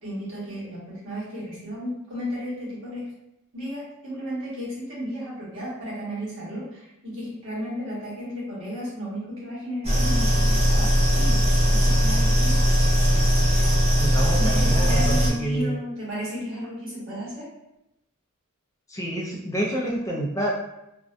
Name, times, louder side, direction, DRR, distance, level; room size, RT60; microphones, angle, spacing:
voice 1, 0.0-3.0 3.5-12.6 14.4-17.5, equal, 60° right, -7 dB, 1.1 m, -33 dB
sound 1, 9.8-15.3, equal, 30° right, 0.6 m, -20 dB
voice 2, 13.9-15.1 15.4-15.8 18.9-20.5, right 1 dB, 15° left, -4 dB, 0.3 m, -28 dB
2.4 x 2.1 x 2.5 m, 0.86 s
head